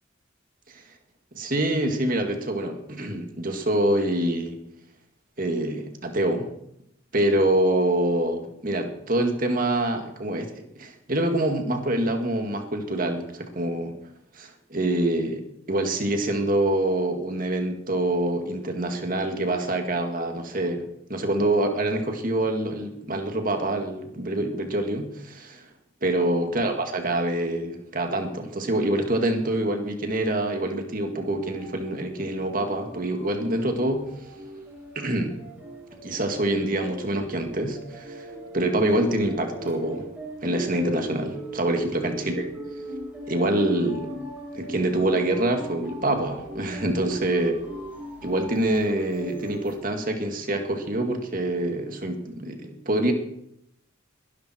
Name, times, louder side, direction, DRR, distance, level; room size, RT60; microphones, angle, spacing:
voice 1, 1.3-4.6 5.4-6.5 7.1-10.5 10.8-13.9 14.3-20.8 21.1-25.7 26.0-34.1 35.0-35.3 36.0-40.1 40.4-42.5 43.3-44.1 44.5-47.5 48.2-53.1, right 1 dB, 40° right, 5 dB, 2.2 m, -26 dB
sound 1, 31.2-49.7, equal, 5° right, 4.8 m, -39 dB
22.0 x 12.5 x 4.6 m, 0.77 s
head